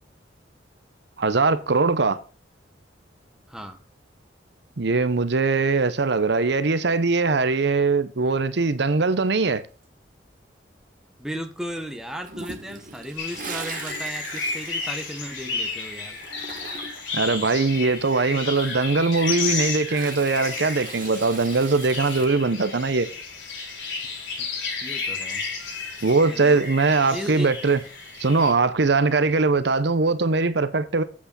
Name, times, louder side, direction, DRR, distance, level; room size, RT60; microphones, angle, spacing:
voice 1, 1.2-2.2 4.8-9.6 17.1-23.1 26.0-27.8 28.2-31.0, right 3 dB, 65° right, 0.8 m, -21 dB
voice 2, 11.2-16.2 18.3-18.4 24.4-24.5 24.8-25.4 26.3-26.6 27.1-27.5, equal, 5° right, 1.3 m, -35 dB
Toilet flush, 12.2-15.7 16.0-17.2 19.2-22.3, right 4 dB, 50° right, 1.7 m, -39 dB
sound 1, 13.2-28.5, left 4 dB, 85° left, 4.5 m, -32 dB
8.6 x 8.1 x 4.0 m
head